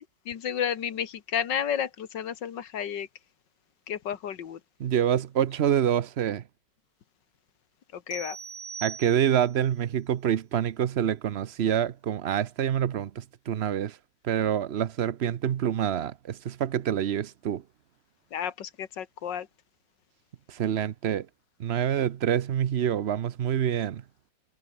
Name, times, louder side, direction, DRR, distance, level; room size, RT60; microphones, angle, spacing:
voice 1, 0.0-3.1 3.9-4.6 7.9-8.4 18.3-19.5, left 8 dB, 65° left, 2.0 m, -32 dB
voice 2, 4.8-6.4 8.8-14.0 14.2-17.6 20.5-21.3 21.6-24.0, right 9 dB, 80° right, 0.5 m, -26 dB
sound 1, 8.1-9.6, right 6 dB, 45° right, 1.8 m, -41 dB
omnidirectional pair, 2.1 m